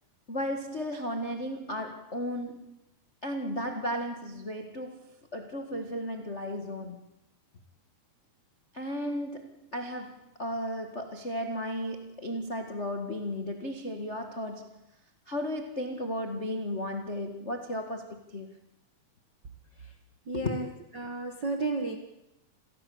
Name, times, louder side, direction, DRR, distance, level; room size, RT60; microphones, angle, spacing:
voice 1, 0.3-2.8 3.2-7.0 8.7-14.8 15.3-18.6 20.3-20.6, left 1 dB, 80° left, 0.6 m, -35 dB
voice 2, 20.3-20.7 20.9-22.0, right 3 dB, 60° right, 1.1 m, -32 dB
28.0 x 17.0 x 8.7 m
omnidirectional pair, 4.6 m